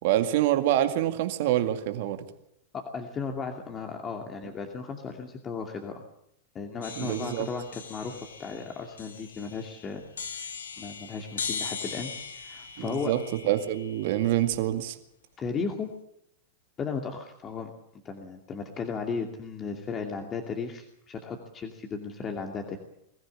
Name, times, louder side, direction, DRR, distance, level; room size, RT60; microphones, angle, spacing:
voice 1, 0.0-2.2 7.0-7.5 12.8-15.0, right 12 dB, 65° right, 8 dB, 2.1 m, -26 dB
voice 2, 2.7-6.0 6.5-10.5 10.8-13.1 15.4-15.9 16.8-17.7 18.0-22.8, left 5 dB, 30° left, 3 dB, 2.6 m, -35 dB
sound 1, 6.8-14.8, left 5 dB, 85° left, 2.2 m, -40 dB
22.0 x 14.5 x 8.8 m, 0.77 s
hypercardioid pair, 105°, 0 cm